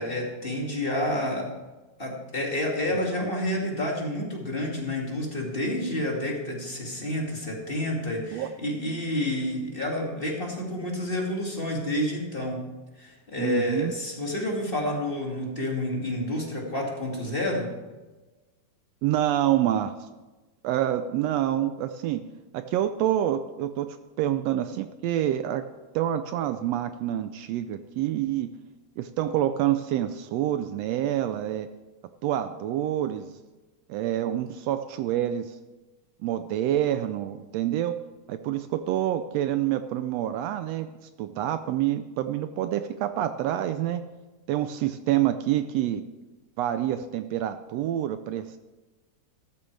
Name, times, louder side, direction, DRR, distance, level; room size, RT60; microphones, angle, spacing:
voice 1, 0.0-1.5 2.0-12.6 13.0-17.7, left 1 dB, 20° left, -1 dB, 1.9 m, -29 dB
voice 2, 13.4-13.9 19.0-19.9 20.6-22.2 22.5-25.6 25.9-28.5 29.0-31.7 32.2-33.4 33.9-35.6 36.2-38.0 38.3-40.9 41.2-44.0 44.5-46.0 46.6-48.6, right 12 dB, 80° right, 10 dB, 1.5 m, -27 dB
14.0 x 13.0 x 3.3 m, 1.2 s
omnidirectional pair, 3.3 m